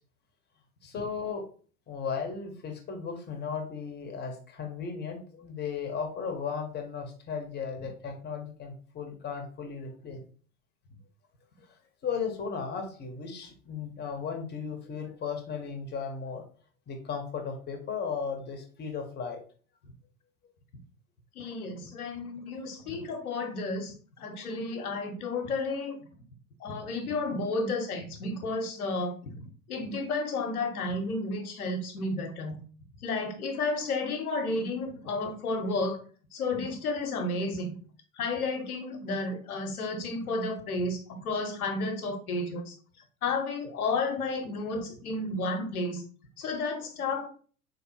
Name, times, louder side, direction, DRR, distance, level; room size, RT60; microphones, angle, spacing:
voice 1, 0.8-1.4 1.9-10.2 11.6-11.7 12.0-16.4 16.9-19.4, left 6 dB, 20° left, 4 dB, 0.9 m, -36 dB
voice 2, 21.3-26.0 26.6-32.6 33.0-36.0 36.3-37.7 38.2-42.7 43.2-46.0 46.4-47.3, left 3 dB, 70° left, 5 dB, 0.9 m, -32 dB
4.1 x 2.9 x 2.7 m, 0.41 s
figure-of-eight pair, 85°, 45 cm